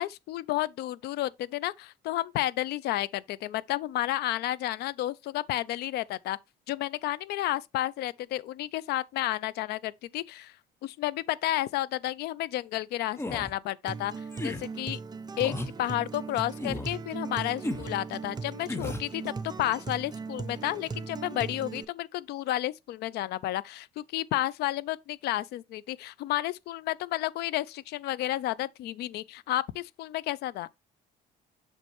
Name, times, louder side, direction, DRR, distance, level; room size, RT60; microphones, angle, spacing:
voice 1, 0.0-6.4 6.7-10.5 10.8-14.1 14.4-15.0 15.4-30.7, left 14 dB, 75° left, 0.5 m, -31 dB
sound 1, 13.2-13.5 14.3-14.6 15.4-15.7 16.6-16.9 17.6-17.9 18.7-19.1, left 1 dB, 15° left, 0.8 m, -34 dB
Acoustic guitar, 13.9-21.8, right 4 dB, 25° right, 0.6 m, -38 dB
6.6 x 5.2 x 3.0 m
cardioid pair, 110°, 17 cm